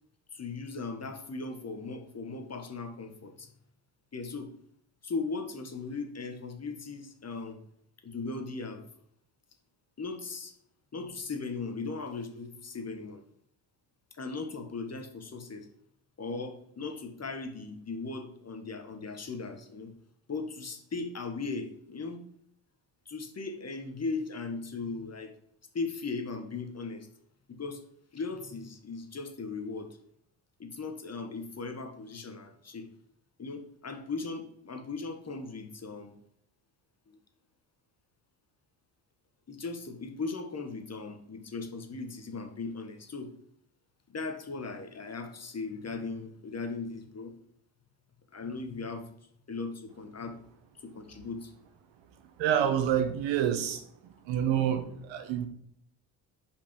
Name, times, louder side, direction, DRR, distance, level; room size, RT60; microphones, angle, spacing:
voice 1, 0.3-3.5 4.1-4.5 5.0-7.6 8.0-8.8 10.0-10.5 10.9-13.2 14.1-15.7 16.2-19.9 20.3-22.3 23.0-25.3 25.7-27.1 27.5-27.8 28.1-30.0 30.6-32.9 33.4-36.2 37.1-37.2 39.5-43.3 44.1-47.3 48.3-49.1 49.5-50.4 50.8-51.5, left 4 dB, 30° left, 6 dB, 1.5 m, -38 dB
voice 2, 52.4-53.8 54.3-55.5, right 9 dB, 65° right, 8 dB, 1.2 m, -27 dB
5.3 x 5.0 x 5.3 m, 0.68 s
supercardioid pair, 65°, 48 cm